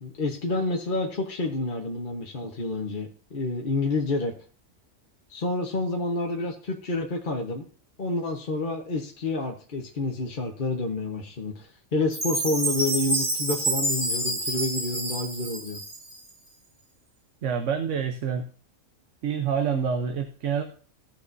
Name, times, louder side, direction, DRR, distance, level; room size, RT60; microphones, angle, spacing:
voice 1, 0.0-4.3 5.3-7.6 8.0-15.8, left 2 dB, 40° left, 1 dB, 1.2 m, -29 dB
Chime, 12.1-16.3, right 2 dB, 85° right, 3.7 m, -28 dB
voice 2, 17.4-18.5 19.2-20.6, right 7 dB, 65° right, 6 dB, 1.2 m, -27 dB
16.0 x 6.9 x 2.6 m, 0.41 s
omnidirectional pair, 1.4 m